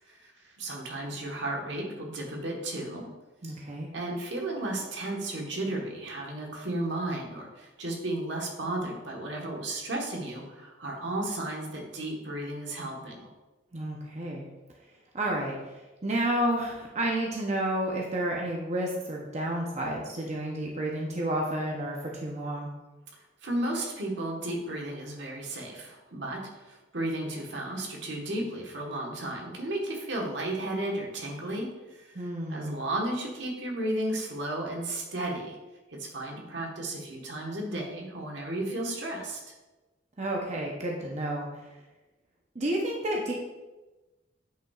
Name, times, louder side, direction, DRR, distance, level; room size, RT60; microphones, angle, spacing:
voice 1, 0.1-3.1 3.9-13.3 23.4-35.6 35.9-39.5, right 1 dB, 75° right, 0 dB, 1.3 m, -34 dB
voice 2, 3.4-3.9 13.7-14.5 15.1-15.8 16.0-22.7 32.1-32.8 40.2-41.5 42.5-43.3, right 1 dB, 40° right, -2 dB, 0.7 m, -30 dB
8.9 x 5.4 x 2.4 m, 1.1 s
head